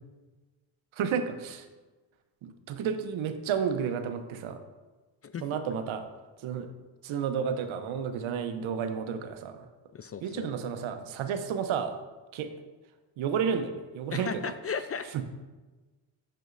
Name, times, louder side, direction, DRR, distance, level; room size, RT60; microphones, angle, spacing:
voice 1, 1.0-1.6 2.4-4.6 5.4-6.1 6.4-6.7 7.0-9.6 10.2-12.0 12.3-12.5 13.2-14.5 15.1-15.2, right 7 dB, 70° right, 8 dB, 0.9 m, -31 dB
voice 2, 9.9-10.5 14.1-15.2, left 6 dB, 30° left, 11 dB, 0.4 m, -36 dB
7.6 x 6.8 x 2.6 m, 1.2 s
supercardioid pair, 50°, 49 cm